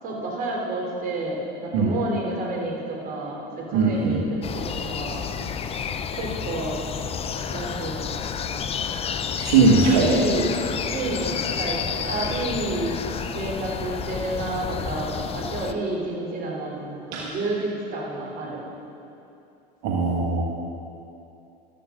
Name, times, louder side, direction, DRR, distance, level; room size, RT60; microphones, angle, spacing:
voice 1, 0.0-5.3 6.2-6.8 7.5-8.2 9.8-10.5 10.8-13.0 13.3-18.6, right 2 dB, 45° right, -2 dB, 3.7 m, -30 dB
voice 2, 3.7-4.2 9.4-10.2 17.1-17.3 19.8-20.4, right 4 dB, 65° right, -4 dB, 2.0 m, -19 dB
sound 1, 4.4-15.7, left 7 dB, 30° left, 0.7 m, -30 dB
14.5 x 13.0 x 3.9 m, 2.8 s
supercardioid pair, 105°, 21 cm